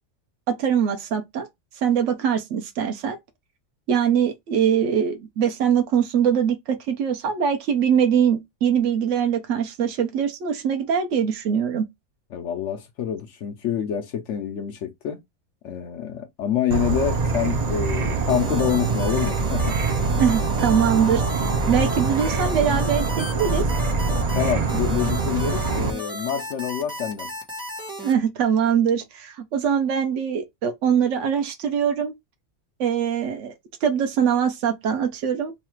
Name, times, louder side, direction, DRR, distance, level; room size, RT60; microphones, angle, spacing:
voice 1, 0.5-1.5 1.8-3.2 3.9-11.9 20.2-23.7 28.0-32.1 32.8-33.5 33.8-35.5, right 8 dB, 70° right, 1.0 m, -22 dB
voice 2, 12.3-15.2 15.6-19.7 24.3-27.3, left 9 dB, 70° left, 0.9 m, -27 dB
Insect / Frog, 16.7-25.9, right 4 dB, 55° right, 0.4 m, -24 dB
sound 1, 18.3-28.1, equal, 5° right, 0.8 m, -34 dB
3.1 x 2.4 x 4.3 m
omnidirectional pair, 1.3 m